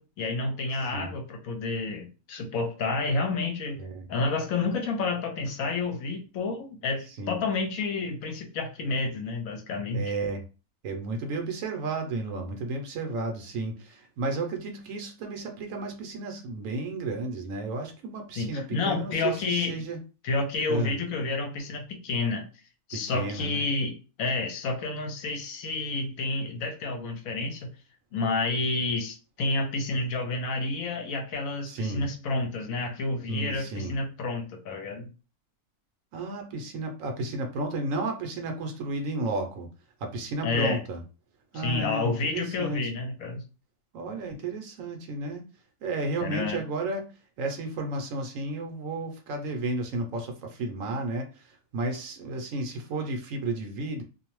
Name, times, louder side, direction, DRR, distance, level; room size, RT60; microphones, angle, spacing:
voice 1, 0.0-3.8 4.1-10.1 18.4-19.8 20.2-22.5 22.9-27.7 28.1-35.1 40.4-40.8 41.5-43.4 46.2-46.6, left 3 dB, 70° left, 4 dB, 1.0 m, -30 dB
voice 2, 9.9-10.4 10.8-20.0 20.7-21.0 22.9-23.6 31.7-32.0 33.3-34.0 36.1-39.7 40.0-41.0 41.5-42.8 43.9-45.4 45.8-47.0 47.4-54.0, right 2 dB, 70° right, 4 dB, 0.9 m, -33 dB
2.5 x 2.0 x 2.9 m, 0.33 s
omnidirectional pair, 1.6 m